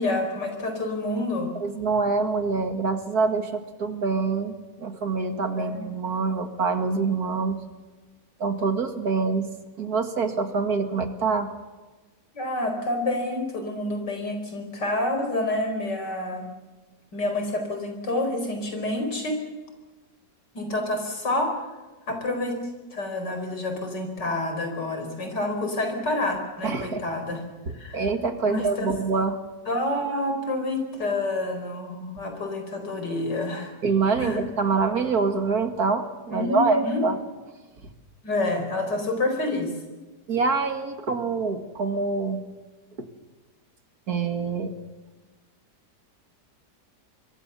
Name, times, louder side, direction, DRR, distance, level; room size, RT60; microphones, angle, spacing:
voice 1, 0.0-1.5 5.6-5.8 12.3-16.5 17.1-19.4 20.5-21.5 22.1-22.6 22.9-27.4 27.7-28.0 28.4-28.9 29.7-33.7 34.2-34.4 36.3-37.1 38.2-39.7, left 2 dB, 85° left, 5 dB, 5.2 m, -28 dB
voice 2, 1.6-4.5 4.8-7.6 8.4-11.5 26.6-27.0 27.9-29.4 33.8-37.2 40.3-42.4 44.1-44.7, right 4 dB, 60° right, 7 dB, 2.5 m, -25 dB
25.5 x 23.5 x 7.0 m, 1.2 s
omnidirectional pair, 1.8 m